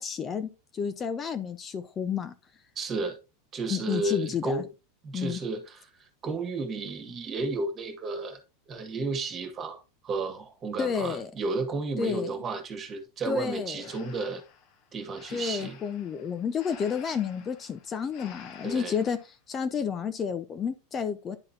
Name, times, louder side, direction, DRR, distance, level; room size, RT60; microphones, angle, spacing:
voice 1, 0.0-2.3 3.7-4.6 5.1-5.4 10.8-11.3 12.0-12.4 13.3-13.8 15.3-19.2 19.5-21.4, left 6 dB, 30° left, 0.6 m, -31 dB
voice 2, 2.7-3.2 3.5-4.7 5.0-8.4 8.7-14.4 14.9-15.8 18.6-19.0, right 3 dB, 30° right, 1.7 m, -33 dB
Breathing, 13.8-19.3, left 6 dB, 55° left, 1.3 m, -51 dB
11.0 x 3.8 x 2.7 m
hypercardioid pair, 95°, 0 cm